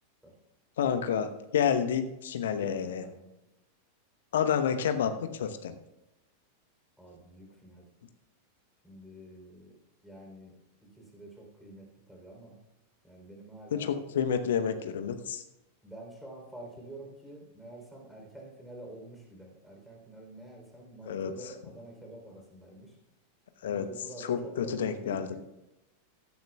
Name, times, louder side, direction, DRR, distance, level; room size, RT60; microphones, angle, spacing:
voice 1, 0.8-3.1 4.3-5.8 13.7-15.4 21.1-21.5 23.6-25.3, left 8 dB, 60° left, 9 dB, 1.0 m, -29 dB
voice 2, 2.5-3.3 7.0-7.8 8.8-9.8 10.0-10.5 11.1-12.5 13.0-14.0 15.8-22.9 23.6-25.4, right 1 dB, ahead, 0 dB, 3.6 m, -47 dB
16.0 x 12.0 x 2.3 m, 0.93 s
figure-of-eight pair, 90°, 0 cm